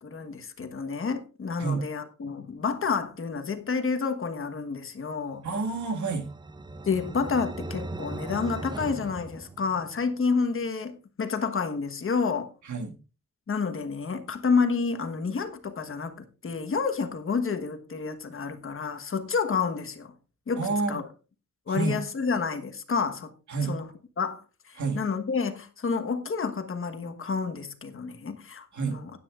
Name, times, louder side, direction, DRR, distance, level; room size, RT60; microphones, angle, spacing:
voice 1, 0.0-5.4 6.8-12.5 13.5-20.1 20.5-21.0 21.7-23.3 23.7-23.8 24.2-29.1, left 5 dB, 45° left, 1.3 m, -29 dB
voice 2, 5.4-6.3 12.6-13.0 20.6-21.0 21.7-22.0 23.5-23.8 24.8-25.0 28.7-29.0, right 4 dB, 80° right, 1.9 m, -29 dB
sound 1, 5.6-10.2, right 2 dB, 15° right, 0.5 m, -39 dB
16.0 x 10.0 x 2.5 m
wide cardioid pair, 160°, 29 cm